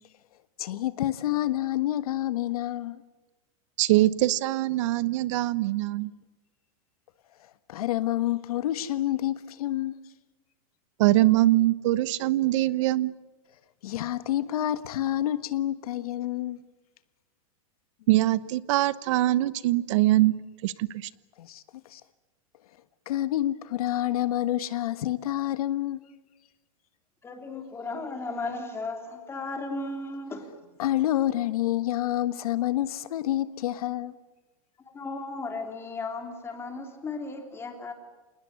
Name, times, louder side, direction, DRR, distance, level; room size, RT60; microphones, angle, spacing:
voice 1, 0.6-3.0 7.7-9.9 13.8-16.6 21.4-21.6 21.9-22.0 23.1-26.0 30.8-34.2, left 13 dB, 75° left, 1.4 m, -28 dB
voice 2, 3.8-6.1 11.0-13.1 18.1-21.1, right 16 dB, 55° right, 1.1 m, -23 dB
voice 3, 27.2-30.5 34.8-37.9, left 3 dB, 15° left, 3.3 m, -35 dB
27.5 x 20.0 x 9.5 m
supercardioid pair, 160°, 19 cm